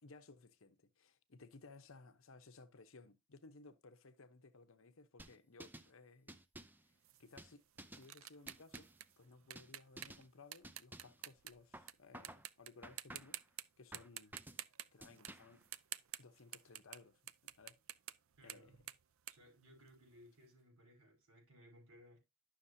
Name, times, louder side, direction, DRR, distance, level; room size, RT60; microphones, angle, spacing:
voice 1, 0.0-6.3 7.2-7.6 7.9-8.9 9.2-13.4 13.8-14.3 14.9-15.6 16.2-17.8 18.4-18.8, left 3 dB, 65° left, 0.9 m, -60 dB
sound 1, 5.2-5.9 6.3-6.8 7.4-8.1 8.5-9.0 9.6-9.7 10.0-10.3 10.6-11.2 11.7-12.5 12.8-13.4 13.9-14.6 15.0-15.6, right 1 dB, 10° right, 0.5 m, -54 dB
sound 2, 7.0-11.9 12.2-12.7 13.0-13.6 13.9-17.0 17.3-20.3, right 12 dB, 70° right, 0.5 m, -50 dB
voice 2, 18.4-18.9 19.3-22.2, equal, 85° right, 5.7 m, -63 dB
11.5 x 6.5 x 2.7 m
head